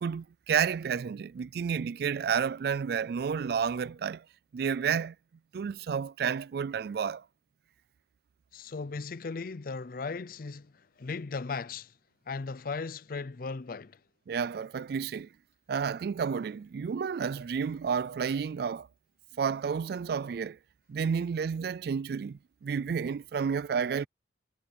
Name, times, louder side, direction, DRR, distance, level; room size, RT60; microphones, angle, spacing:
voice 1, 0.0-4.2 4.5-5.2 5.5-7.2 14.3-15.3 15.7-18.9 19.4-20.6 20.9-24.1, right 6 dB, 55° right, 0.3 m, -31 dB
voice 2, 8.5-11.9 12.3-14.0, left 4 dB, 50° left, 0.5 m, -37 dB
head